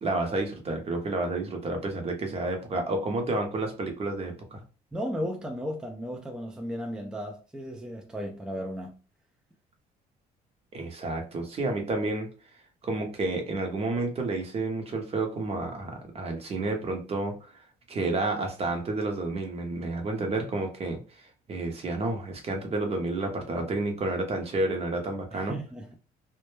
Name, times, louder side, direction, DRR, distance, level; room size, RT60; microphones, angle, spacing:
voice 1, 0.0-4.6 10.7-12.3 12.8-25.6, right 2 dB, 35° right, 0.8 m, -30 dB
voice 2, 4.9-9.0 25.3-26.0, equal, 5° right, 0.4 m, -35 dB
2.1 x 2.0 x 3.1 m
cardioid pair, 110°, 17 cm